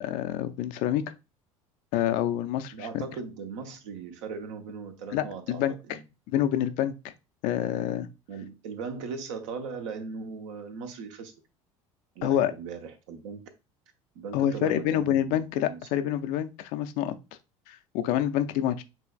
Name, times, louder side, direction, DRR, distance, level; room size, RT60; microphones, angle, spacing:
voice 1, 0.0-1.0 1.9-3.0 5.1-6.0 6.3-7.1 7.4-8.1 12.2-12.5 14.3-17.1 17.7-18.8, left 11 dB, 50° left, 0.5 m, -27 dB
voice 2, 2.7-6.1 8.3-11.3 12.2-13.4 14.1-15.8, right 5 dB, 60° right, 0.9 m, -38 dB
7.3 x 3.1 x 2.3 m
figure-of-eight pair, 70°, 18 cm